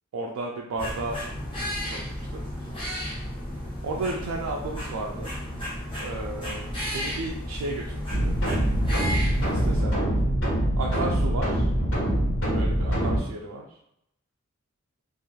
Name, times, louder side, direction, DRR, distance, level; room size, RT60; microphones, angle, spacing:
voice 1, 0.1-1.2 1.8-2.4 3.8-5.3 6.0-8.4 9.4-10.0 10.8-11.7 12.5-13.7, right 2 dB, 75° right, -1 dB, 0.4 m, -33 dB
sound 1, 0.8-9.8, equal, 25° left, 0.9 m, -33 dB
sound 2, 8.1-13.2, right 1 dB, 65° left, 1.2 m, -24 dB
2.4 x 2.3 x 3.1 m, 0.79 s
head